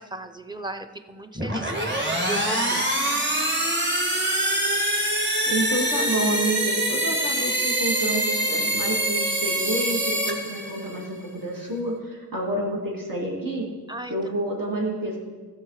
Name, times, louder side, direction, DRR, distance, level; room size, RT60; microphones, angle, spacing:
voice 1, 0.0-2.8 13.9-14.2, right 2 dB, 10° right, 7 dB, 0.7 m, -36 dB
sound 1, 1.3-11.1, right 1 dB, 30° right, 2.0 m, -25 dB
voice 2, 5.5-13.7 14.1-15.2, right 1 dB, 65° right, -3 dB, 2.4 m, -28 dB
15.5 x 6.5 x 4.9 m, 1.5 s
wide cardioid pair, 55°, 36 cm